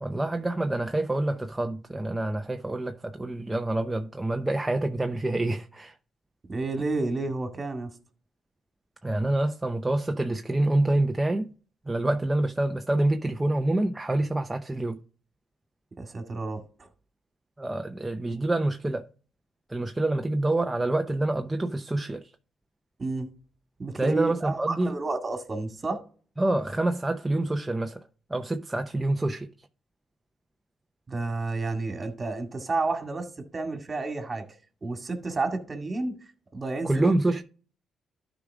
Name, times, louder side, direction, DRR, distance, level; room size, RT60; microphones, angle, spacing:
voice 1, 0.0-5.9 9.0-11.5 11.9-15.0 17.6-19.0 19.7-22.2 23.9-25.0 26.4-28.0 28.3-29.5 36.8-37.4, right 2 dB, 10° right, 0.7 m, -27 dB
voice 2, 6.5-7.9 16.0-16.9 23.0-23.3 23.8-26.0 31.1-34.4 34.8-36.2 36.5-36.9, right 3 dB, 30° right, 2.1 m, -31 dB
12.5 x 5.1 x 3.6 m
cardioid pair, 90°, 0 cm